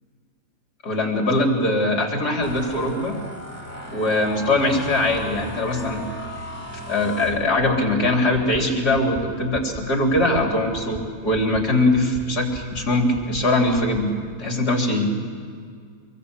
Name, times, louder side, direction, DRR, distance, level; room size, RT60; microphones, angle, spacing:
voice 1, 0.8-3.1 3.9-6.0 6.9-15.1, left 1 dB, 65° left, 1 dB, 4.4 m, -21 dB
sound 1, 2.4-11.8 12.3-12.6 12.9-13.4, equal, 10° left, 2.9 m, -38 dB
sound 2, 8.3-8.6 8.9-9.2 9.5-9.8 10.1-10.4 10.7-11.0 11.3-11.6 11.9-12.2 12.5-12.8 13.1-13.4 13.7-14.0, right 4 dB, 20° right, 1.4 m, -37 dB
26.0 x 22.5 x 8.3 m, 2.1 s
omnidirectional pair, 1.8 m